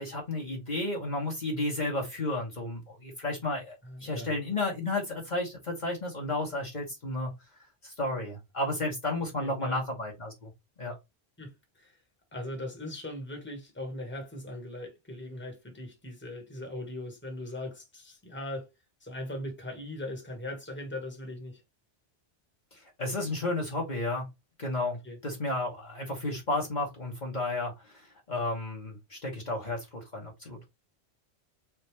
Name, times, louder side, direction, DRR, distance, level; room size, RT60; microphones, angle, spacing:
voice 1, 0.0-7.3 7.8-10.5 10.8-10.9 23.0-24.3 24.6-30.6, left 2 dB, 45° left, 1.3 m, -32 dB
voice 2, 3.8-4.4 9.4-9.8 11.4-12.0 12.3-18.7 19.0-21.6 25.0-25.2, left 1 dB, 10° left, 1.3 m, -39 dB
3.9 x 3.5 x 3.2 m
omnidirectional pair, 1.1 m